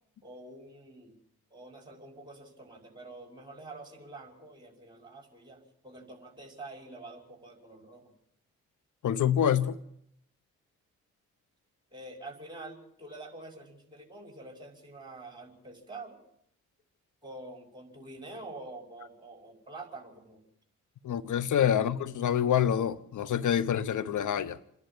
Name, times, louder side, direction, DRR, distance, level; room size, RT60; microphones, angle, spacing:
voice 1, 0.2-1.1 1.5-8.1 11.9-16.2 17.2-20.4, right 2 dB, 15° right, 5.8 m, -47 dB
voice 2, 9.0-9.8 21.0-24.6, left 9 dB, 70° left, 1.1 m, -26 dB
28.0 x 11.0 x 8.7 m
supercardioid pair, 50°, 32 cm